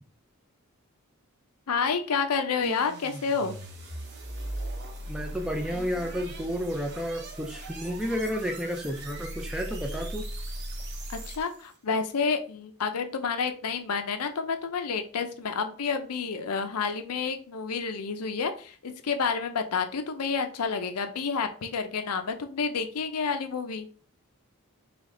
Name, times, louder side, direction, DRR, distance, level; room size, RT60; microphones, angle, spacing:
voice 1, 1.7-3.5 11.1-23.9, left 5 dB, 85° left, 7 dB, 0.6 m, -29 dB
sound 1, 2.6-11.7, right 1 dB, 50° right, 0.8 m, -38 dB
voice 2, 5.1-10.3, equal, 5° right, 3 dB, 0.4 m, -31 dB
3.4 x 3.0 x 3.7 m, 0.42 s
head